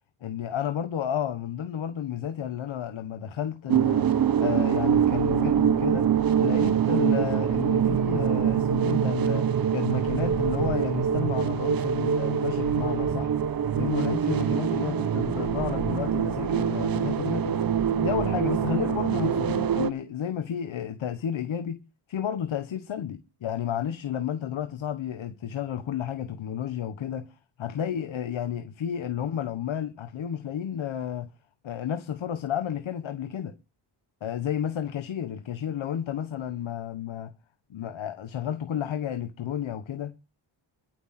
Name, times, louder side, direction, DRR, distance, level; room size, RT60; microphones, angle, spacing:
voice 1, 0.2-4.1 4.4-6.1 6.4-13.3 13.8-17.6 18.0-21.8 22.1-27.3 27.6-31.3 31.6-33.5 34.2-37.3 37.7-40.2, left 9 dB, 65° left, 1.2 m, -31 dB
sound 1, 3.7-19.9, right 8 dB, 45° right, 0.9 m, -24 dB
22.0 x 8.0 x 4.3 m
wide cardioid pair, 170°, 50 cm